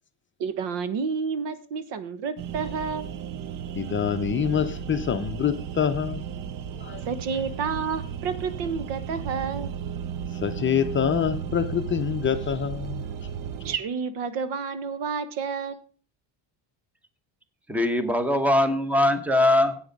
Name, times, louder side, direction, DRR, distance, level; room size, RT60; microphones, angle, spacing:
voice 1, 0.4-3.1 7.1-9.7 13.6-15.8, right 5 dB, 70° right, 1.3 m, -30 dB
sound 1, 2.4-13.8, right 8 dB, 50° right, 0.7 m, -34 dB
voice 2, 3.7-6.2 6.8-7.0 10.4-13.0, left 8 dB, 25° left, 0.6 m, -26 dB
voice 3, 17.7-19.8, left 1 dB, 5° right, 1.0 m, -21 dB
9.6 x 8.5 x 5.2 m
cardioid pair, 155°, 45 cm